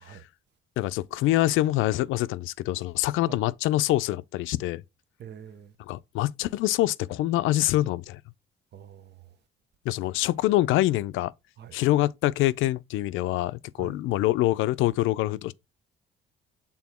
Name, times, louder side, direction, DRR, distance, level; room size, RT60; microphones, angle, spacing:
voice 1, 0.8-4.8 5.9-8.2 9.9-11.3 11.7-15.5, left 16 dB, 90° left, 0.4 m, -25 dB
voice 2, 5.2-5.8 8.7-9.3 11.6-11.8 13.8-14.0, right 8 dB, 60° right, 0.8 m, -45 dB
6.2 x 3.7 x 4.2 m
cardioid pair, 90°, 20 cm